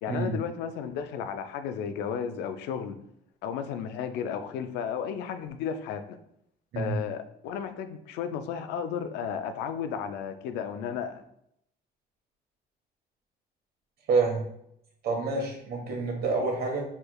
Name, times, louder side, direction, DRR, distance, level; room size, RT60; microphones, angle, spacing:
voice 1, 0.0-3.0 3.4-6.2 6.8-11.2, left 7 dB, 90° left, 8 dB, 0.4 m, -33 dB
voice 2, 14.1-14.4 15.0-16.8, right 4 dB, 65° right, 1 dB, 1.1 m, -27 dB
4.5 x 3.3 x 2.3 m, 0.74 s
cardioid pair, 110°, 17 cm